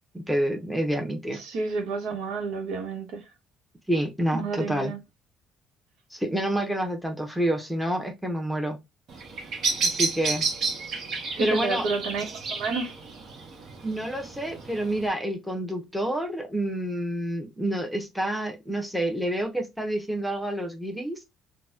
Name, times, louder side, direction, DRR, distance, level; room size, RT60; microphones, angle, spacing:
voice 1, 0.3-1.4 3.9-4.9 6.1-8.8 9.8-10.4 11.4-11.8 13.8-21.2, right 1 dB, ahead, 0.8 m, -28 dB
voice 2, 1.3-3.3 4.3-5.0 11.4-12.9, right 4 dB, 85° right, 0.9 m, -30 dB
Bird vocalization bird call bird song, 9.1-15.1, right 4 dB, 60° right, 0.9 m, -31 dB
3.9 x 2.2 x 2.3 m
cardioid pair, 120°, 0 cm